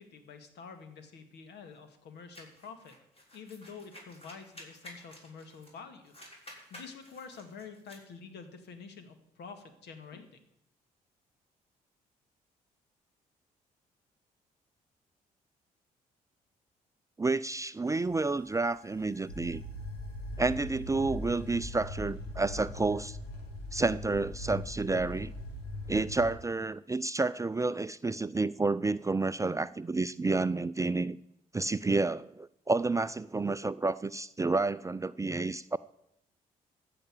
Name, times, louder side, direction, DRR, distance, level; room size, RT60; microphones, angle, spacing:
voice 1, 0.0-2.9 3.3-10.4, left 5 dB, 65° left, 8 dB, 2.0 m, -48 dB
sound 1, 2.3-5.8 6.0-8.0, left 1 dB, 30° left, 6.2 m, -52 dB
voice 2, 17.2-19.6 20.4-23.2 23.7-25.3 25.9-31.2 31.5-35.8, right 3 dB, 15° right, 15 dB, 0.5 m, -30 dB
sound 2, 17.9-26.3, left 1 dB, 80° left, 2.2 m, -41 dB
15.0 x 5.9 x 9.3 m, 0.76 s
hypercardioid pair, 45°, 19 cm